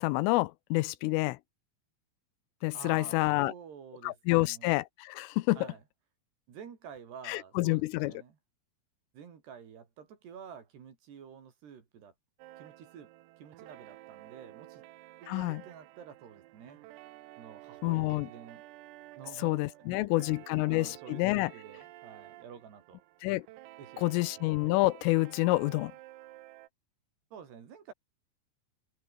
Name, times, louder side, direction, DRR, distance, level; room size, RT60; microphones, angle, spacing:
voice 1, 0.0-1.4 2.6-3.5 4.0-5.7 7.3-8.1 15.3-15.6 17.8-18.3 19.4-21.5 23.2-23.4 24.0-25.9, left 21 dB, 85° left, 3.1 m, -28 dB
voice 2, 2.7-4.7 5.6-5.8 6.5-8.4 9.1-12.1 12.6-13.1 13.4-14.8 15.2-16.8 17.4-18.6 19.2-19.5 19.9-23.0 23.8-24.3 27.3-27.9, right 7 dB, 55° right, 5.1 m, -50 dB
sound 1, 12.4-26.7, right 17 dB, 85° right, 3.9 m, -52 dB
omnidirectional pair, 5.9 m